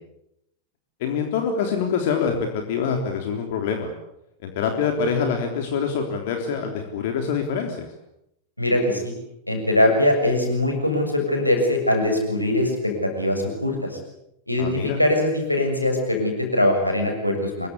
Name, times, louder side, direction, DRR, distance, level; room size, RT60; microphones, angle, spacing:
voice 1, 1.0-3.9 4.4-7.9 14.6-15.0, left 6 dB, 50° left, 4 dB, 3.5 m, -25 dB
voice 2, 8.6-9.2 9.5-14.0 14.5-17.7, left 1 dB, 85° left, 3 dB, 7.0 m, -22 dB
26.0 x 23.0 x 8.4 m, 0.81 s
figure-of-eight pair, 90°, 0 cm